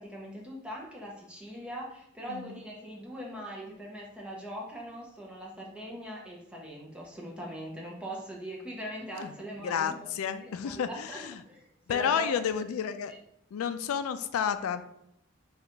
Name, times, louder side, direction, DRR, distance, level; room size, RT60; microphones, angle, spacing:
voice 1, 0.0-12.7 13.1-13.2, equal, 5° right, -3 dB, 0.7 m, -41 dB
voice 2, 2.3-2.6 9.2-11.4 11.9-13.1 13.5-14.8, left 7 dB, 90° left, 11 dB, 0.3 m, -31 dB
3.9 x 2.4 x 4.4 m, 0.76 s
head